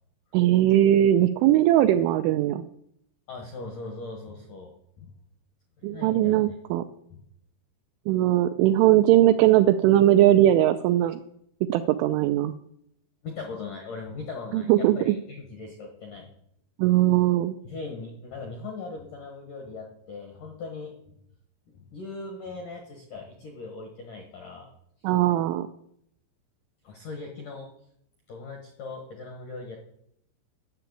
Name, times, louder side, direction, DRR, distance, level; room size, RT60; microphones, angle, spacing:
voice 1, 0.3-2.6 5.8-6.8 8.1-11.2 11.7-12.5 14.5-15.1 16.8-17.6 25.0-25.7, right 13 dB, 85° right, 9 dB, 2.7 m, -20 dB
voice 2, 3.3-5.1 5.8-6.6 7.1-7.2 13.2-16.3 16.9-17.1 17.6-21.1 21.7-24.7 26.8-27.7 28.3-29.8, left 3 dB, 80° left, 2 dB, 1.9 m, -39 dB
10.5 x 6.8 x 8.5 m, 0.74 s
omnidirectional pair, 6.0 m